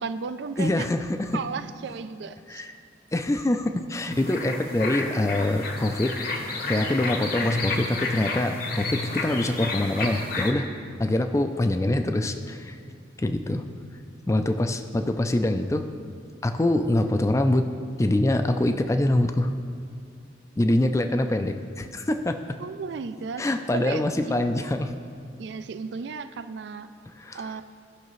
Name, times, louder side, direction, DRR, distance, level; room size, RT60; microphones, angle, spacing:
voice 1, 0.0-0.9 1.3-2.6 22.6-23.5 23.7-24.4 25.4-26.9 27.3-27.6, right 5 dB, 65° right, 12 dB, 0.4 m, -34 dB
voice 2, 0.6-1.4 2.5-2.7 3.1-6.1 6.7-10.7 11.0-12.8 13.2-13.7 14.3-15.9 16.4-17.7 18.0-19.5 20.6-22.6 23.4-24.9 27.2-27.4, left 1 dB, 15° left, 8 dB, 0.3 m, -24 dB
sound 1, 4.1-10.5, left 3 dB, 50° left, 0.9 m, -31 dB
14.5 x 5.8 x 3.1 m, 2.4 s
head